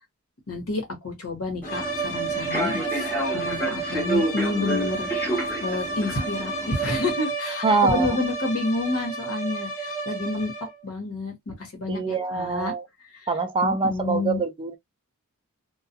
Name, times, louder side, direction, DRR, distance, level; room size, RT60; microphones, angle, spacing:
voice 1, 0.5-10.5 10.8-12.7 13.2-13.3 13.6-14.4, left 2 dB, 75° left, 1.1 m, -29 dB
sound 1, 1.6-10.8, right 3 dB, 40° left, 1.1 m, -31 dB
Human voice / Subway metro underground, 1.6-7.1, equal, 10° left, 0.9 m, -30 dB
voice 2, 7.6-8.2 11.9-12.9 13.3-14.8, right 4 dB, 25° right, 0.3 m, -24 dB
2.3 x 2.3 x 2.7 m
head